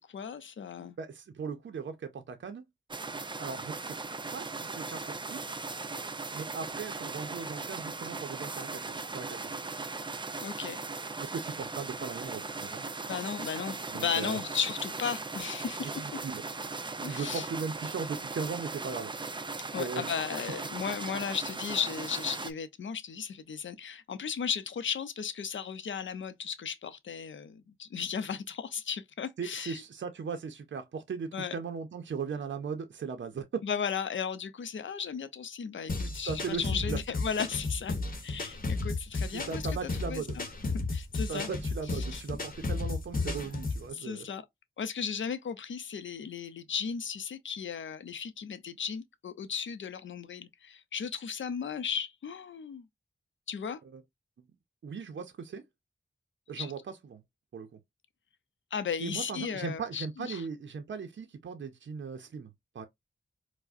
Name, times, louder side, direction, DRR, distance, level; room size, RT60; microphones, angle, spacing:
voice 1, 0.0-1.0 10.4-10.8 13.0-16.2 17.0-17.5 19.7-29.8 31.3-31.5 33.6-37.9 38.2-40.4 40.9-41.5 41.9-42.2 43.9-44.4 44.8-52.9 53.5-53.8 56.6-56.7 58.7-60.4, left 7 dB, 80° left, 0.5 m, -35 dB
voice 2, 1.0-2.6 3.4-4.0 4.3-5.6 6.3-9.6 11.2-12.9 13.9-14.4 15.8-16.4 17.1-19.1 19.8-20.1 29.4-33.6 36.2-37.0 39.3-40.3 41.3-44.3 53.9-54.0 54.8-55.6 56.5-57.2 57.5-57.8 59.0-62.5 62.7-62.8, right 5 dB, 70° right, 0.5 m, -38 dB
sound 1, 2.9-22.5, right 3 dB, 25° right, 0.4 m, -38 dB
sound 2, 35.9-43.9, left 3 dB, 45° left, 0.9 m, -33 dB
4.6 x 2.1 x 2.5 m
wide cardioid pair, 60°, 19 cm